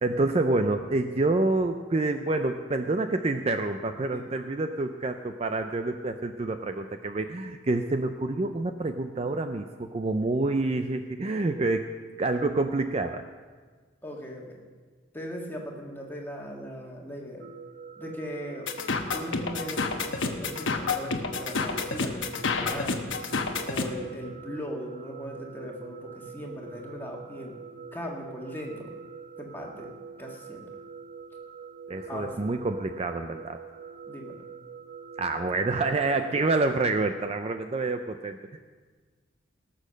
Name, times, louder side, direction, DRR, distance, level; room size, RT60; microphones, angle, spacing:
voice 1, 0.0-11.9 12.2-13.2 31.9-33.6 35.2-38.6, right 2 dB, 30° right, 7 dB, 0.4 m, -27 dB
voice 2, 4.1-4.4 14.0-14.6 15.1-17.4 18.0-18.7 19.1-23.1 23.7-27.6 27.9-28.9 29.4-29.9 30.2-30.7 32.1-32.5 34.1-34.4, equal, 10° left, -1 dB, 1.7 m, -39 dB
sound 1, 17.4-37.0, right 5 dB, 70° right, 1.1 m, -44 dB
sound 2, 18.7-23.9, left 4 dB, 70° left, 1.0 m, -29 dB
18.5 x 6.5 x 6.4 m, 1.5 s
head